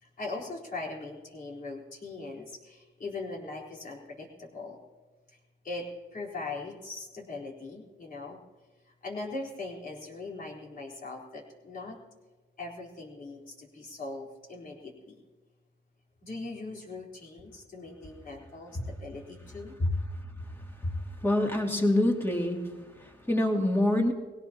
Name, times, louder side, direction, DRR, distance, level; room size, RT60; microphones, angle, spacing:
voice 1, 0.0-4.8 5.6-8.4 8.9-12.0 12.6-15.2 16.2-19.8, left 3 dB, 45° left, -2 dB, 4.1 m, -40 dB
voice 2, 21.2-22.7 23.0-24.1, left 1 dB, 10° left, 0 dB, 2.7 m, -25 dB
20.5 x 17.5 x 2.9 m, 1.3 s
cardioid pair, 90°, 20 cm